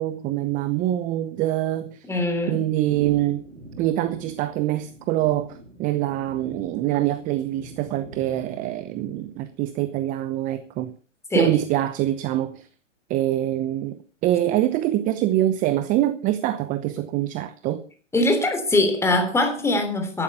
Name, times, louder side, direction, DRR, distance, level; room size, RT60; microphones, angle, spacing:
voice 1, 0.0-2.1 2.5-3.4 3.8-10.9 11.3-12.7 13.1-17.8, right 13 dB, 20° right, 0.8 m, -24 dB
voice 2, 2.0-2.6 11.3-11.6 18.1-20.2, left 2 dB, 5° left, 3.3 m, -22 dB
sound 1, 2.8-9.6, right 2 dB, 85° right, 3.6 m, -43 dB
14.0 x 12.0 x 5.6 m
hypercardioid pair, 125°, 38 cm